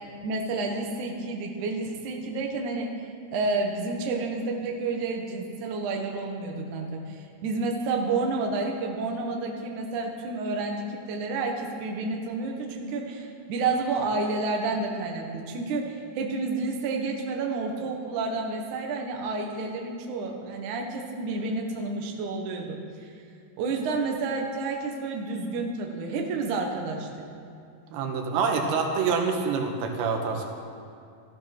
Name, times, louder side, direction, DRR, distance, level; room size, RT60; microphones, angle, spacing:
voice 1, 0.2-2.9 3.3-23.1 23.6-27.1, right 3 dB, 60° right, 1 dB, 2.4 m, -30 dB
voice 2, 27.9-30.5, right 5 dB, 90° right, 3 dB, 3.6 m, -26 dB
14.5 x 13.5 x 6.0 m, 2.5 s
omnidirectional pair, 4.9 m